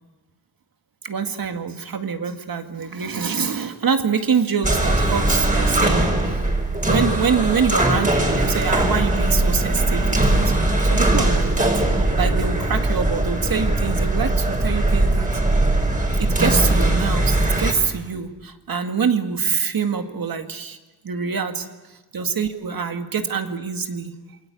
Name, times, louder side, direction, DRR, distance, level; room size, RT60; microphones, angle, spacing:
voice 1, 1.0-6.4 6.9-10.5 10.8-15.3 16.2-20.8 21.0-24.1, right 6 dB, 65° right, 6 dB, 2.1 m, -25 dB
sound 1, 4.6-17.7, right 1 dB, 20° right, 5.0 m, -20 dB
28.0 x 22.5 x 8.4 m, 1.2 s
wide cardioid pair, 105°, 38 cm